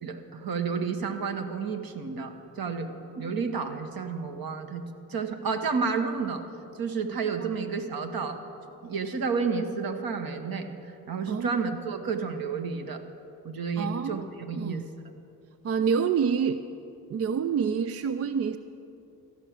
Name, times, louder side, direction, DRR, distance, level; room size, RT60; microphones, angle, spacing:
voice 1, 0.0-4.8 5.1-6.4 6.8-8.4 8.8-13.0 13.4-14.8, right 5 dB, 50° right, 6 dB, 1.2 m, -31 dB
voice 2, 13.8-14.2 14.5-14.8 15.6-16.6 17.1-18.6, right 6 dB, 35° right, 11 dB, 0.4 m, -27 dB
13.5 x 6.1 x 8.5 m, 2.7 s
hypercardioid pair, 40°, 46 cm